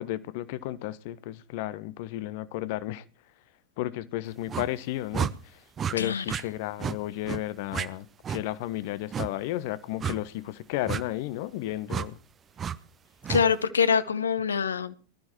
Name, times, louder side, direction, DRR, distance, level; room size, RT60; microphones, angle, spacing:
voice 1, 0.0-3.0 3.8-5.6 5.9-12.2, left 15 dB, 50° left, 0.7 m, -33 dB
sound 1, 4.5-4.7 5.1-5.3 5.8-5.9 6.3-6.4 6.8-7.0 7.2-7.4 7.7-7.9 8.2-8.4 9.1-9.3 10.0-10.2 10.9-11.0 11.9-12.1 12.6-12.8 13.2-13.4, right 8 dB, 25° right, 0.6 m, -30 dB
voice 2, 13.3-15.0, left 6 dB, 70° left, 0.9 m, -24 dB
20.5 x 12.5 x 3.0 m
figure-of-eight pair, 90°, 0 cm